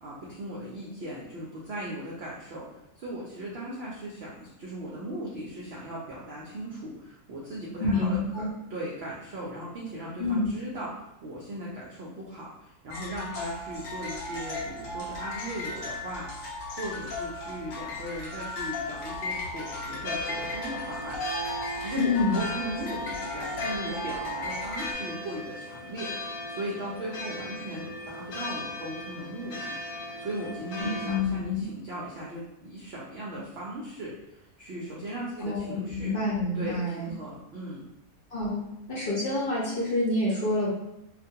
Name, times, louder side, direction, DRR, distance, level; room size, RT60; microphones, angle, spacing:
voice 1, 0.0-2.7 3.0-8.2 8.7-21.2 21.7-36.1 36.5-37.8, right 1 dB, 65° right, -5 dB, 0.6 m, -38 dB
voice 2, 7.8-8.5 10.2-10.5 22.0-22.4 30.8-31.7 35.4-37.1 38.3-38.6 38.9-40.7, left 2 dB, 50° left, -6 dB, 0.7 m, -27 dB
sound 1, 12.9-24.9, left 2 dB, 70° left, 1.0 m, -36 dB
sound 2, 20.0-31.2, left 1 dB, 90° left, 0.5 m, -38 dB
2.4 x 2.2 x 2.7 m, 0.85 s
omnidirectional pair, 1.5 m